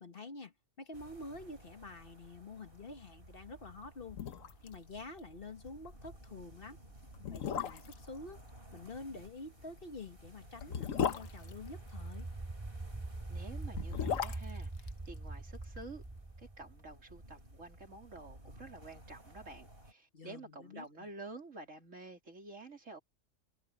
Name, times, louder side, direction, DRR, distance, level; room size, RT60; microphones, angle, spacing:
voice 1, 0.0-4.2 4.6-6.8 7.3-8.4 8.7-12.3 20.1-21.1, left 3 dB, 45° left, 1.6 m, -48 dB
sound 1, 0.9-19.9, right 1 dB, 45° right, 5.5 m, -57 dB
sound 2, 3.7-3.8 4.1-4.8 5.0-5.1 5.5-5.7 6.4-6.5 7.1-8.1 9.6-12.3 13.5-15.8 16.0-16.1, left 7 dB, 80° left, 1.4 m, -37 dB
sound 3, 10.6-17.3, right 2 dB, 15° right, 0.6 m, -44 dB
voice 2, 13.3-16.0 16.4-23.0, right 3 dB, 70° right, 4.0 m, -50 dB
omnidirectional pair, 1.3 m